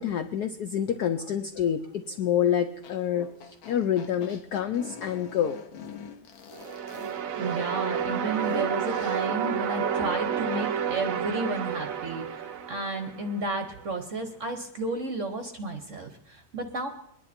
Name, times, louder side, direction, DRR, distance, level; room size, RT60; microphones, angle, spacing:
voice 1, 0.0-3.3 3.6-5.6, left 9 dB, 85° left, 9 dB, 0.8 m, -27 dB
sound 1, 2.8-9.3, left 7 dB, 70° left, 1.7 m, -45 dB
sound 2, 6.5-13.6, right 8 dB, 75° right, 0.7 m, -30 dB
voice 2, 7.3-16.9, right 2 dB, 50° right, 6 dB, 1.0 m, -32 dB
22.5 x 10.5 x 4.3 m, 0.84 s
omnidirectional pair, 2.4 m